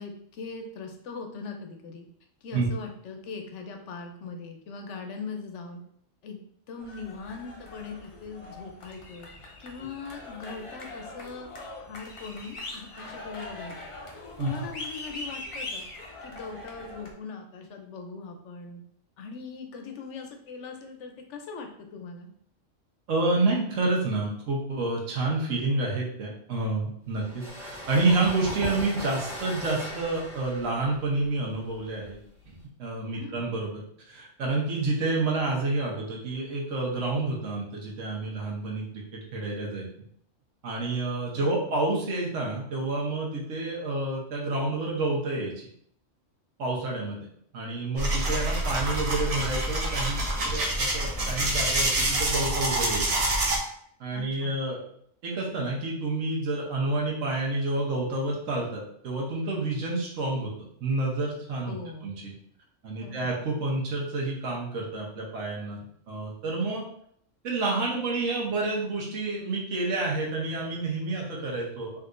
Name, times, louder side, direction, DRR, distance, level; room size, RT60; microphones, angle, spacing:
voice 1, 0.0-2.0 2.4-5.8 6.2-6.4 6.7-9.3 9.6-11.5 11.8-13.7 14.4-15.9 16.2-18.8 19.2-22.3 33.1-33.6 35.0-35.1 41.3-41.6 54.1-54.6 61.6-62.1 63.0-63.4, left 4 dB, 70° left, 4 dB, 0.8 m, -40 dB
sound 1, 6.8-17.1, left 2 dB, 45° left, 0.4 m, -42 dB
voice 2, 23.1-32.2 32.8-39.9 40.6-45.7 46.6-47.2 47.5-53.1 54.0-54.8 55.2-60.5 60.8-61.7 62.0-62.3 62.8-65.8 66.1-66.8 67.4-72.0, right 2 dB, 75° right, -3 dB, 1.2 m, -29 dB
sound 2, 27.1-32.6, equal, ahead, 1.1 m, -39 dB
sound 3, 48.0-53.6, right 1 dB, 40° right, 0.5 m, -27 dB
3.6 x 2.7 x 2.4 m, 0.67 s
omnidirectional pair, 1.3 m